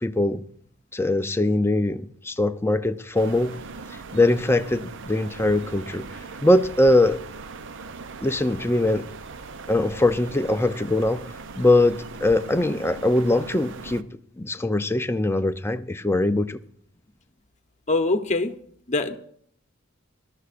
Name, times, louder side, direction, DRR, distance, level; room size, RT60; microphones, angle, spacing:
voice 1, 0.0-0.4 0.9-3.5 4.1-6.0 6.4-7.2 8.2-9.1 9.7-11.2 11.6-14.0 14.4-16.6, left 1 dB, 10° left, 0.5 m, -22 dB
sound 1, 3.1-14.0, right 4 dB, 65° right, 0.6 m, -40 dB
voice 2, 17.9-18.6 18.9-19.2, left 2 dB, 35° left, 1.0 m, -23 dB
19.5 x 12.5 x 2.5 m
head